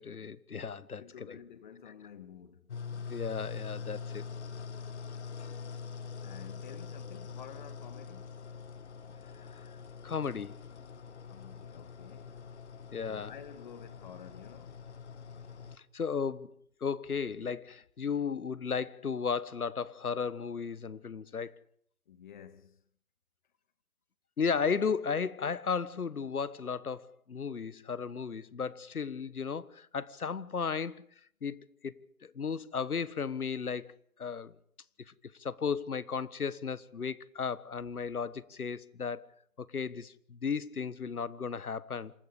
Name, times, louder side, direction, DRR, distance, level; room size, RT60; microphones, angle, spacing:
voice 1, 0.0-1.4 3.1-4.2 10.0-10.6 12.9-13.3 15.9-16.5 16.8-21.6 24.4-31.0 31.4-31.9 32.2-33.9 34.2-34.5 35.1-35.2 35.4-39.3 39.6-42.1, left 6 dB, 80° left, 1.5 m, -35 dB
voice 2, 1.0-2.7 6.2-8.4 11.3-12.4 13.0-14.9 22.1-22.8, left 8 dB, 35° left, 2.2 m, -51 dB
sound 1, 2.7-15.8, left 6 dB, 50° left, 1.4 m, -44 dB
27.0 x 14.5 x 8.2 m
figure-of-eight pair, 155°, 43 cm